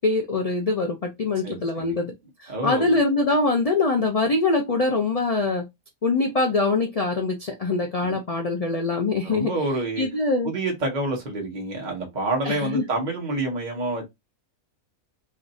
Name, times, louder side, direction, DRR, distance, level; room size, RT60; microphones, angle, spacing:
voice 1, 0.0-2.1 2.4-5.6 6.0-9.5 10.0-10.5 12.4-12.8, left 3 dB, 65° left, 0.3 m, -23 dB
voice 2, 1.4-1.9 2.5-2.9 8.0-8.2 9.2-10.1 10.4-14.0, right 2 dB, 35° right, 1.2 m, -28 dB
3.2 x 2.5 x 4.0 m
omnidirectional pair, 1.5 m